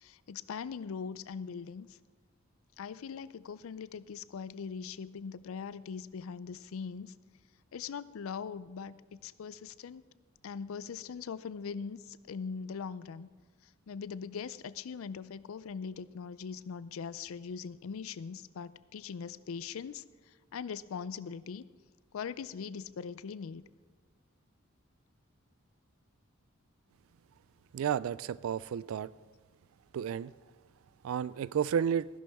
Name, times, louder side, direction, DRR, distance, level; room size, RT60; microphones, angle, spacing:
voice 1, 0.0-1.9 2.8-7.1 7.7-10.0 10.4-13.3 13.9-20.0 20.5-21.6 22.1-23.6, left 6 dB, 75° left, 17 dB, 0.4 m, -41 dB
voice 2, 27.7-29.1 29.9-30.3 31.0-32.1, right 8 dB, 75° right, 19 dB, 0.3 m, -31 dB
15.0 x 11.0 x 3.5 m, 1.4 s
head